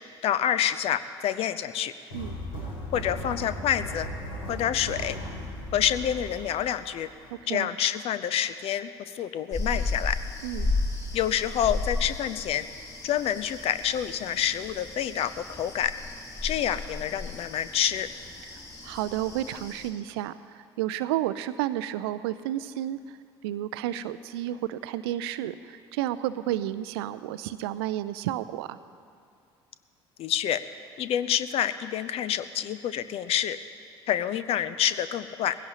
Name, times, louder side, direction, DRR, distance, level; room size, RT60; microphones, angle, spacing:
voice 1, 0.2-1.9 2.9-4.1 4.5-5.2 5.7-7.1 7.5-8.9 9.1-10.2 11.1-12.6 13.0-15.9 16.4-18.1 30.2-30.6 31.0-33.6 34.1-35.6, left 10 dB, 45° left, 13 dB, 0.6 m, -27 dB
sound 1, 2.1-7.3, equal, 75° left, 4.6 m, -37 dB
sound 2, 9.5-19.9, left 3 dB, 25° left, 3.0 m, -34 dB
voice 2, 18.8-23.0 23.4-28.8, right 13 dB, 65° right, 14 dB, 0.5 m, -31 dB
20.0 x 16.5 x 2.9 m, 2.4 s
figure-of-eight pair, 60°, 14 cm